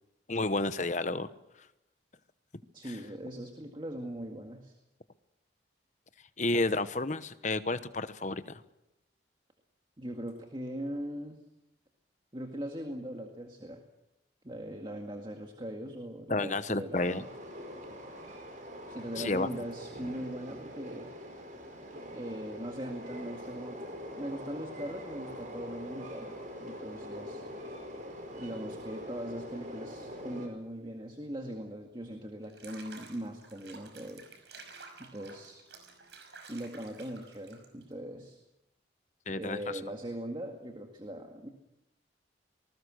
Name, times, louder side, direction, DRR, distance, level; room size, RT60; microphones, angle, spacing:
voice 1, 0.3-1.3 2.9-3.0 6.4-8.6 16.3-17.2 19.2-19.5 39.3-39.6, left 2 dB, 40° left, 12 dB, 1.0 m, -31 dB
voice 2, 2.7-4.7 10.0-11.4 12.3-13.8 14.4-17.3 18.9-21.1 22.1-23.8 24.2-26.3 26.6-27.4 28.4-34.3 35.0-35.7 36.5-38.4 39.4-41.5, equal, 25° right, 3 dB, 2.0 m, -40 dB
Train, 16.9-30.5, equal, 45° right, 5.3 m, -44 dB
Water / Bathtub (filling or washing), 32.4-37.9, right 4 dB, 65° right, 5.5 m, -52 dB
26.5 x 20.0 x 6.4 m, 0.89 s
head